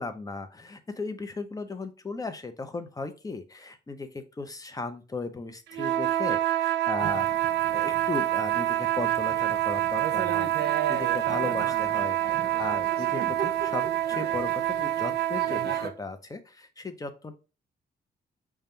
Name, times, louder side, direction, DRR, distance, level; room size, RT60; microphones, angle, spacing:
voice 1, 0.0-7.3 7.7-17.3, left 3 dB, 20° left, 9 dB, 0.7 m, -36 dB
sound 1, 5.7-15.9, right 13 dB, 85° right, 0.4 m, -27 dB
Thunder / Rain, 7.0-15.9, right 8 dB, 65° right, 0.8 m, -38 dB
5.3 x 2.3 x 4.3 m, 0.32 s
cardioid pair, 120°, 18 cm